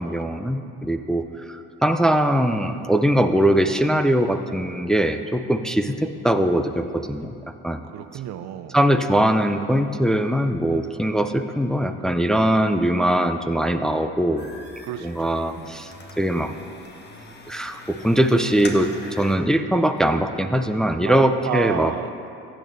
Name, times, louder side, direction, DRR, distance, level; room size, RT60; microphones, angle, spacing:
voice 1, 0.0-7.3 7.6-7.8 8.7-14.5 15.0-16.5 17.5-21.9, right 1 dB, ahead, 7 dB, 0.5 m, -21 dB
voice 2, 7.8-8.8 14.8-15.3 15.6-16.0 21.0-22.3, right 11 dB, 60° right, 11 dB, 0.5 m, -32 dB
sound 1, 14.4-19.4, left 2 dB, 35° left, 1.2 m, -41 dB
15.5 x 8.9 x 2.7 m, 2.6 s
hypercardioid pair, 65°, 31 cm